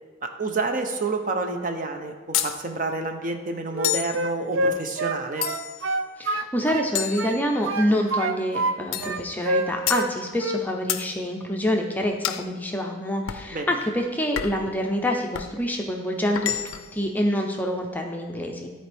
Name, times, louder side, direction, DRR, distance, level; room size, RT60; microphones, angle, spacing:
voice 1, 0.2-5.5 13.5-13.7, right 3 dB, 40° right, 5 dB, 0.6 m, -29 dB
sound 1, 2.3-2.6 3.8-4.2 5.4-5.9 7.0-7.9 8.9-9.2 9.9-10.1 10.9-11.1 12.2-12.5 13.3-13.5 14.4-14.7 15.3-15.6 16.4-17.0, left 11 dB, 85° left, 0.4 m, -29 dB
Wind instrument woodwind instrument, 3.7-6.9 7.2-8.8 9.0-10.1 10.4-10.7, right 1 dB, 75° right, 0.5 m, -26 dB
voice 2, 6.2-18.7, equal, 10° left, 2 dB, 0.5 m, -26 dB
13.0 x 4.4 x 3.4 m, 1.4 s
head